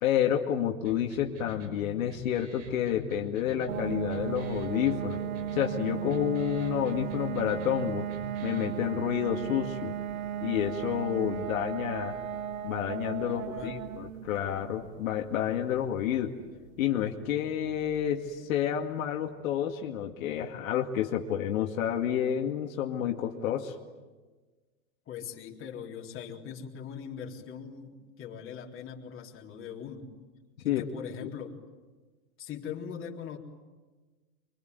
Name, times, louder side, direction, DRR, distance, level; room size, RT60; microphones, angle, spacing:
voice 1, 0.0-5.2 5.5-8.1 8.4-9.9 10.4-12.2 12.6-16.4 16.8-23.8 30.6-30.9, left 10 dB, 75° left, 2 dB, 2.3 m, -29 dB
sound 1, 0.8-8.8, right 1 dB, 60° right, 6.6 m, -45 dB
sound 2, 3.7-18.3, right 10 dB, 85° right, 1.4 m, -36 dB
voice 2, 13.2-13.8 25.1-30.1 30.6-31.6 32.4-33.4, left 7 dB, 30° left, 0 dB, 3.8 m, -41 dB
24.5 x 24.5 x 9.5 m, 1.3 s
supercardioid pair, 125°, 41 cm